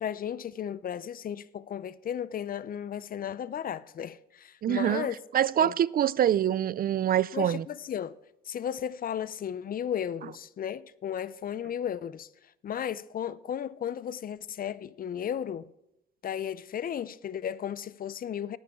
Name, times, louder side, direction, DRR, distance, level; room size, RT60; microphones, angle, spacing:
voice 1, 0.0-5.2 5.6-5.7 7.3-8.2 8.5-12.3 12.6-15.6 16.2-18.6, left 9 dB, 45° left, 0.5 m, -34 dB
voice 2, 4.6-5.1 5.3-7.7, right 10 dB, 50° right, 0.4 m, -25 dB
18.5 x 9.5 x 3.7 m
cardioid pair, 90°, 20 cm